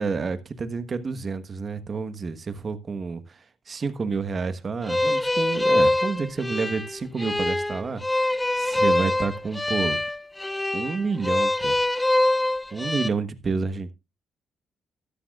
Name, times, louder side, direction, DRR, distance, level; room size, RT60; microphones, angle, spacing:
voice 1, 0.0-10.0 10.7-11.8 12.7-13.9, right 4 dB, 40° right, 1.2 m, -29 dB
sound 1, 4.9-13.1, left 1 dB, 10° left, 0.5 m, -24 dB
13.0 x 12.0 x 2.4 m
cardioid pair, 90°, 0 cm